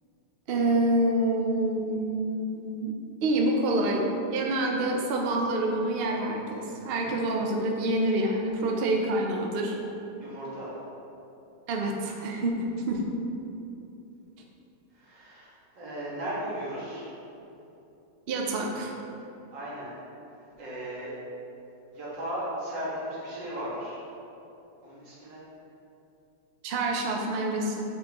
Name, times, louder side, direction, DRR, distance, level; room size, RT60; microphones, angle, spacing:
voice 1, 0.5-2.9 3.2-9.8 11.7-13.0 18.3-19.0 26.6-27.8, right 1 dB, 65° right, 0 dB, 0.6 m, -27 dB
voice 2, 10.2-10.7 15.0-17.1 19.5-19.9 20.6-21.1 21.9-24.0 24.8-25.4, right 1 dB, 85° right, -8 dB, 2.2 m, -36 dB
7.8 x 4.5 x 2.9 m, 2.8 s
omnidirectional pair, 1.9 m